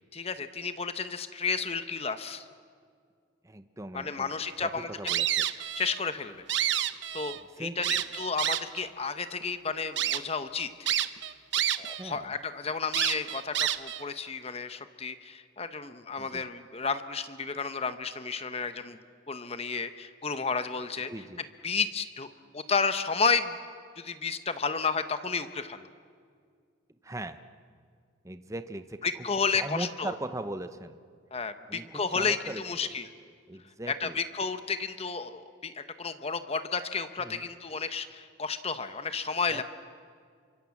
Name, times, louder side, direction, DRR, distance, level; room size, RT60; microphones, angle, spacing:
voice 1, 0.1-2.5 3.9-4.9 5.5-6.4 7.1-10.7 11.8-19.0 19.3-21.1 21.6-23.6 24.0-25.9 29.0-30.1 31.3-33.1 33.9-39.6, left 5 dB, 30° left, 10 dB, 1.0 m, -32 dB
voice 2, 3.4-4.3 4.6-4.7 5.0-5.5 7.6-8.0 12.0-12.3 16.2-16.4 21.1-21.4 27.0-27.4 28.2-29.0 29.5-31.0 31.7-32.9 33.5-34.2 37.2-37.4 39.5-39.6, right 1 dB, 15° right, 10 dB, 0.8 m, -39 dB
sound 1, 5.1-6.0 6.3-7.4 7.8-8.8 9.4-9.5 10.0-10.2 10.9-12.0 12.3-12.4 12.9-14.0, right 11 dB, 60° right, 0.9 m, -28 dB
29.5 x 25.0 x 7.3 m, 2.1 s
head